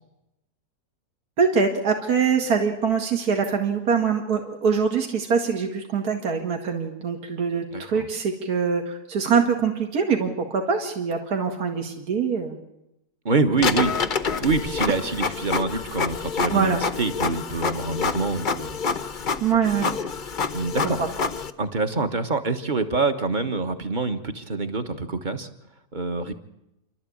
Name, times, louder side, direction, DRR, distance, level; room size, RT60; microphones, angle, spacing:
voice 1, 1.4-12.6 16.5-16.8 19.4-19.9 20.8-21.1, right 6 dB, 60° right, 2 dB, 2.5 m, -23 dB
voice 2, 7.7-8.1 13.2-18.8 20.5-21.1 21.6-25.5 25.9-26.3, right 3 dB, 30° right, 8 dB, 1.4 m, -26 dB
Printer, 13.6-21.5, left 5 dB, 35° left, 0.8 m, -27 dB
29.5 x 12.5 x 8.7 m, 0.87 s
omnidirectional pair, 1.8 m